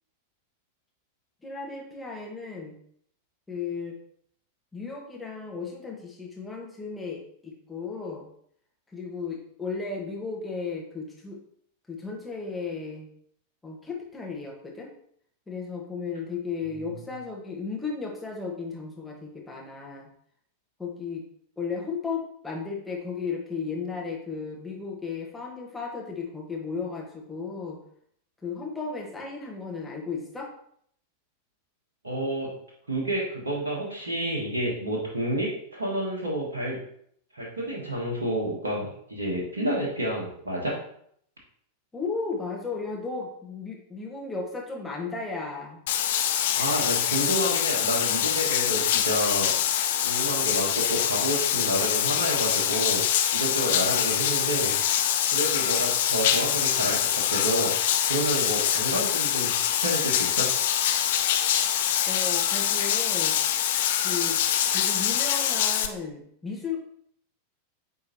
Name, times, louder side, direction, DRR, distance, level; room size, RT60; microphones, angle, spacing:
voice 1, 1.4-2.8 3.5-3.9 4.7-8.3 8.9-11.4 11.9-13.1 13.6-14.9 15.5-20.1 20.8-21.2 21.6-27.8 28.4-30.5 41.9-45.8 62.1-63.4 64.0-64.4 64.7-66.8, left 4 dB, 10° left, -2 dB, 1.5 m, -34 dB
voice 2, 32.0-32.5 32.9-36.8 37.3-40.8 46.5-49.7 50.0-54.8 55.3-57.7 58.1-60.5, right 1 dB, 75° right, -3 dB, 1.4 m, -29 dB
Bathtub (filling or washing), 45.9-65.9, left 10 dB, 55° left, 0.5 m, -25 dB
8.9 x 3.7 x 3.0 m, 0.66 s
figure-of-eight pair, 90°, 0 cm